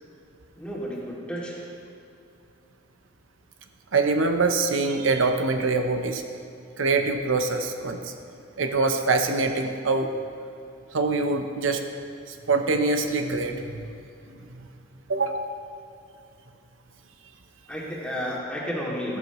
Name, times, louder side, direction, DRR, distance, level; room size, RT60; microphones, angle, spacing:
voice 1, 0.6-1.7 17.7-19.2, equal, 5° left, -6 dB, 2.3 m, -32 dB
voice 2, 3.9-6.2 6.8-8.1 8.6-10.1 10.9-11.8 12.3-13.8 15.1-15.5, right 3 dB, 90° right, 5 dB, 0.8 m, -24 dB
14.0 x 12.0 x 3.1 m, 2.6 s
head